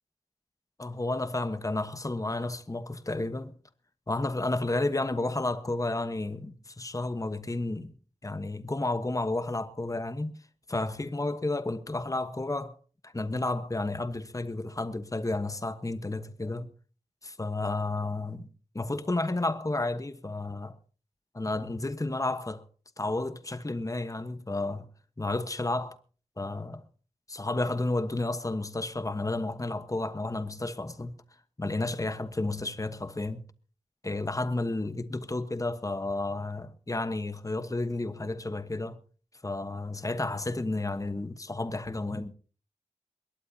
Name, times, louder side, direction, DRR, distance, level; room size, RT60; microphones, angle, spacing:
voice 1, 0.8-3.5 4.1-7.9 8.2-10.4 10.7-12.8 13.0-16.7 17.2-18.5 18.7-20.8 21.3-22.6 23.0-24.9 25.2-26.0 26.4-26.8 27.3-31.2 31.6-33.4 34.0-39.0 39.4-42.3, left 2 dB, 25° left, 1.1 m, -31 dB
22.0 x 18.0 x 2.8 m
cardioid pair, 50°, 12 cm